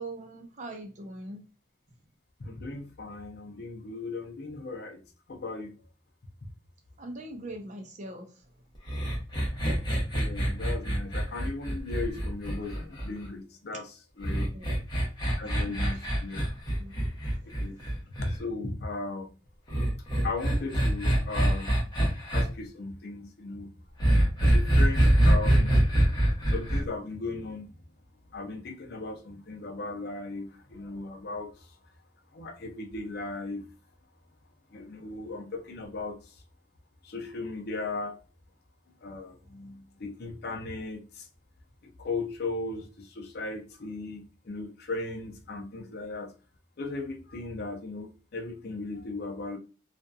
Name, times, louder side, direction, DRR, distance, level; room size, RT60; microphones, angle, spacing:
voice 1, 0.0-1.4 7.0-8.4 14.5-14.8 15.4-16.1 16.4-16.9 17.5-17.9, right 2 dB, 40° right, 4 dB, 0.6 m, -42 dB
voice 2, 2.4-5.0 5.3-5.7 10.1-14.5 15.4-16.4 17.6-17.8 18.2-19.3 20.2-21.8 22.3-23.7 24.4-25.8 26.1-26.2 26.5-27.7 28.3-31.5 32.3-33.6 34.7-36.3 37.0-38.2 39.0-41.3 41.8-46.3 46.8-49.6, left 3 dB, 55° left, 4 dB, 0.6 m, -37 dB
sound 1, 8.9-13.3 14.2-18.3 19.7-22.4 24.0-26.8, right 1 dB, 20° left, 0.9 m, -24 dB
2.7 x 2.4 x 2.2 m, 0.35 s
head